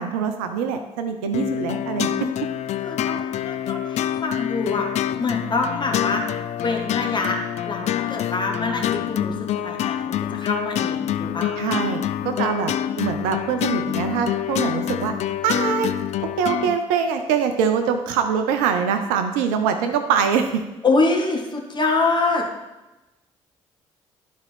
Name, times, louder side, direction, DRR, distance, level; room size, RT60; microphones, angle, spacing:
voice 1, 0.0-2.1 11.6-15.1 15.4-15.9 16.4-20.6, right 7 dB, 65° right, 7 dB, 0.5 m, -23 dB
sound 1, 1.3-16.8, left 11 dB, 45° left, 0.4 m, -26 dB
voice 2, 2.8-4.9 5.2-7.4 7.6-9.3 9.6-11.8 20.8-22.4, left 3 dB, 30° left, 1 dB, 1.5 m, -25 dB
12.0 x 4.1 x 3.3 m, 1.0 s
figure-of-eight pair, 45°, 16 cm